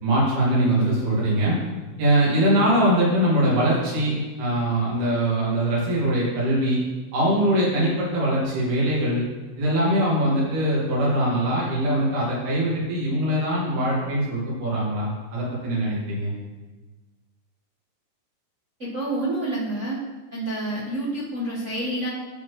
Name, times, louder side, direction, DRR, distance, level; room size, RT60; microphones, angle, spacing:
voice 1, 0.0-1.6 2.0-6.8 7.1-9.2 9.6-16.3, right 1 dB, 85° right, -6 dB, 4.2 m, -22 dB
voice 2, 18.8-20.0 20.3-22.1, right 1 dB, 50° right, -10 dB, 0.8 m, -28 dB
12.0 x 4.2 x 3.3 m, 1.3 s
omnidirectional pair, 4.3 m